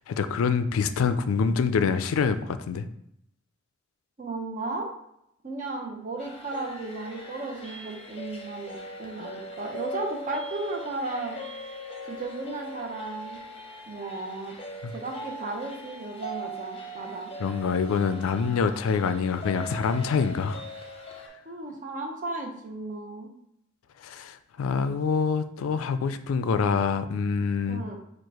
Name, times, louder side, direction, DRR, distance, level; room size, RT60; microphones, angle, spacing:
voice 1, 0.1-2.9 14.8-14.9 17.4-20.6 24.0-27.8, left 5 dB, 80° left, 11 dB, 0.3 m, -26 dB
voice 2, 4.2-4.9 5.4-11.4 12.1-13.4 13.9-14.6 14.9-17.3 21.4-23.3 27.7-28.0, right 2 dB, 40° right, 2 dB, 0.8 m, -35 dB
sound 1, 6.2-21.3, equal, 30° left, 0.8 m, -40 dB
4.5 x 2.4 x 4.7 m, 0.77 s
head